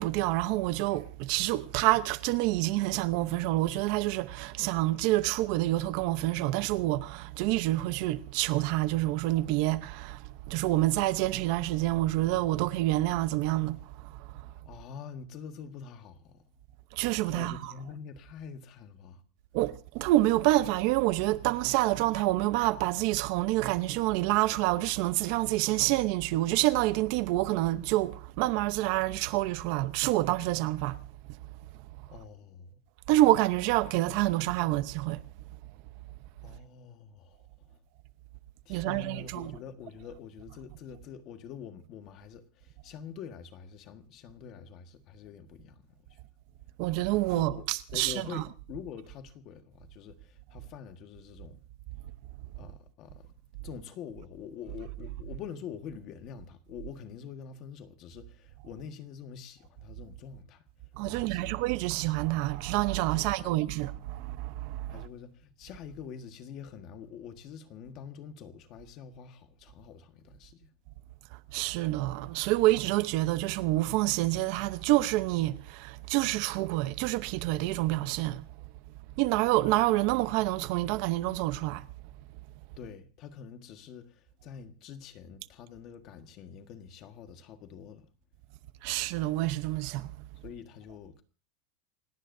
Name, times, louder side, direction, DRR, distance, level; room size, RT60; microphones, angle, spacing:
voice 1, 0.0-14.5 16.9-17.7 19.5-31.0 33.1-35.2 38.7-39.6 46.8-48.4 61.0-65.1 71.3-78.5 79.2-81.9 88.8-90.2, right 17 dB, 45° right, 0.8 m, -28 dB
voice 2, 14.6-16.4 17.3-19.2 32.1-32.8 36.4-37.4 37.7-37.8 38.6-46.2 47.3-51.6 52.6-53.3 53.6-60.6 61.0-61.6 63.1-63.6 64.9-70.7 82.8-88.1 90.4-91.2, left 7 dB, 35° left, 1.6 m, -45 dB
28.5 x 17.5 x 2.7 m
supercardioid pair, 175°, 0 cm